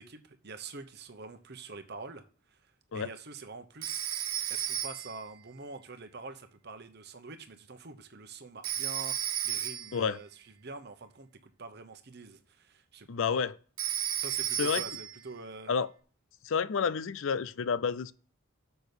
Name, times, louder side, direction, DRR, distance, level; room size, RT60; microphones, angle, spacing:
voice 1, 0.0-2.6 2.9-4.0 4.5-13.1 14.2-15.7, right 3 dB, 50° right, 1.0 m, -46 dB
Telephone, 3.8-5.2 8.6-10.0 13.8-15.2, right 11 dB, 85° right, 1.3 m, -33 dB
voice 2, 13.1-13.6 14.6-14.8 15.7-15.9 16.4-18.1, left 6 dB, 65° left, 0.5 m, -29 dB
6.8 x 6.2 x 6.8 m
head